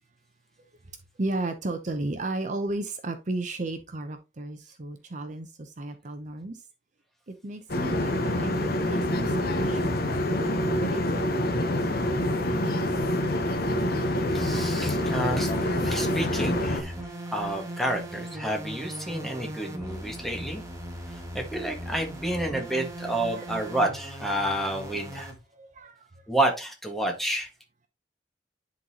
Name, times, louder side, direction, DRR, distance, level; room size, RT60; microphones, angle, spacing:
voice 1, 0.6-6.6 7.3-12.2 12.5-13.4 22.7-22.8 23.3-23.8 25.1-26.3, right 2 dB, 45° right, 0.7 m, -36 dB
sound 1, 7.7-16.8, left 1 dB, 60° left, 0.9 m, -26 dB
sound 2, 14.2-25.4, equal, 20° right, 1.7 m, -39 dB
voice 2, 14.3-15.5 15.8-16.9 17.3-20.6 21.3-25.3 26.3-27.5, right 1 dB, ahead, 1.6 m, -29 dB
10.5 x 4.0 x 2.9 m
head